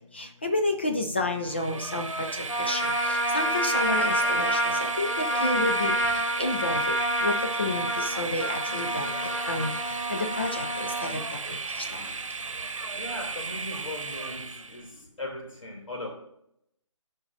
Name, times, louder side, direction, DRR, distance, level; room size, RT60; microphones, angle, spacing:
voice 1, 0.1-9.1 9.5-9.7 10.1-12.1, left 2 dB, 20° left, 5 dB, 0.4 m, -31 dB
Train, 1.4-14.9, right 4 dB, 85° right, 1.0 m, -34 dB
Trumpet, 2.5-11.2, right 1 dB, 70° left, 3.2 m, -28 dB
voice 2, 11.8-12.2 12.9-16.1, left 1 dB, 90° left, 0 dB, 2.9 m, -39 dB
14.5 x 5.2 x 2.6 m, 0.76 s
figure-of-eight pair, 165°, 16 cm